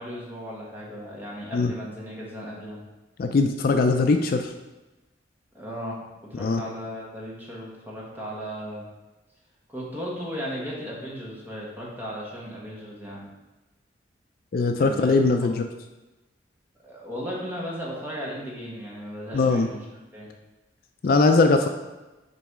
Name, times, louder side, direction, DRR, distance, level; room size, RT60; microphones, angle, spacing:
voice 1, 0.0-2.8 5.5-6.0 6.3-8.9 9.7-13.3 14.8-15.5 16.8-19.8 20.1-20.3, equal, 10° right, -4 dB, 1.4 m, -36 dB
voice 2, 3.2-4.5 6.3-6.6 14.5-15.6 19.3-19.7 21.0-21.7, left 3 dB, 50° left, 6 dB, 0.4 m, -20 dB
6.8 x 3.1 x 4.8 m, 1.1 s
head